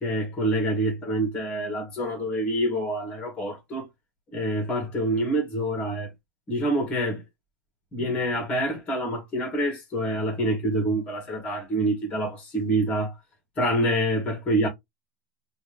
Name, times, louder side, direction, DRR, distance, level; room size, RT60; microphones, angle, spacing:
voice 1, 0.0-3.9 4.3-6.1 6.5-7.2 7.9-13.1 13.6-14.7, right 1 dB, 15° left, 1.7 m, -26 dB
4.4 x 2.8 x 3.3 m
supercardioid pair, 170°, 10 cm